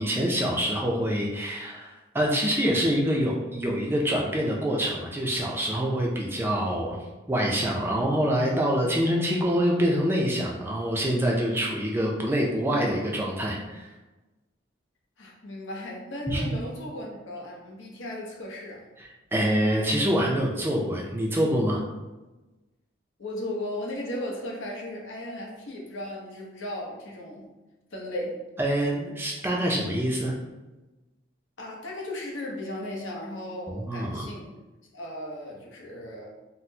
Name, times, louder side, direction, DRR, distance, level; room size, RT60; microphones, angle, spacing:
voice 1, 0.0-7.0 7.3-13.9 16.3-16.5 19.0-21.8 28.6-30.3 33.7-34.3, equal, 10° right, -2 dB, 0.3 m, -26 dB
voice 2, 15.2-18.8 23.2-27.5 27.9-28.4 31.6-34.5 34.9-36.3, left 1 dB, 80° left, -1 dB, 0.8 m, -36 dB
4.1 x 2.0 x 2.7 m, 1.1 s
head